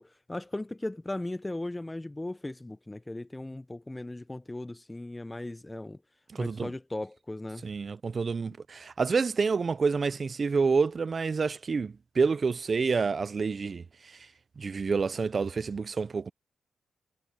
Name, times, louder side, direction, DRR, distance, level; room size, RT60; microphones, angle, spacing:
voice 1, 0.0-6.0 6.4-7.7, left 2 dB, 15° left, 0.7 m, -37 dB
voice 2, 6.3-6.7 7.6-14.2 14.6-16.3, right 5 dB, 40° right, 0.4 m, -28 dB
cardioid pair, 100°, 0 cm